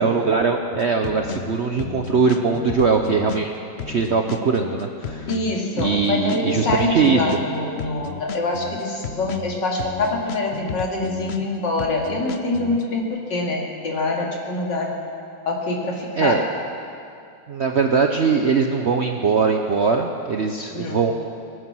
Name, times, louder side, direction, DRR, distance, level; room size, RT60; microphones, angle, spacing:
voice 1, 0.0-3.5 3.9-5.3 5.8-7.3 16.2-16.4 17.5-21.1, right 5 dB, 55° right, 4 dB, 0.8 m, -21 dB
sound 1, 0.7-12.8, left 7 dB, 65° left, 0.6 m, -33 dB
voice 2, 5.3-15.0 15.5-16.4 20.7-21.0, left 2 dB, 80° left, -1 dB, 2.9 m, -25 dB
24.0 x 9.6 x 6.2 m, 2.5 s
omnidirectional pair, 1.9 m